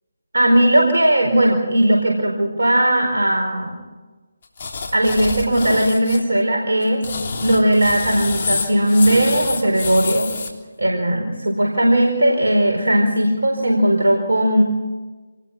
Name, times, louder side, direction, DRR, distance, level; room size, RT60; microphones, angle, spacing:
voice 1, 0.3-3.8 4.9-7.0 7.4-10.3 10.8-14.6, right 1 dB, 75° right, 0 dB, 4.5 m, -17 dB
sound 1, 4.6-6.2 6.8-10.5, left 4 dB, 45° left, 3.2 m, -27 dB
27.5 x 19.5 x 6.0 m, 1.3 s
figure-of-eight pair, 155°, 0 cm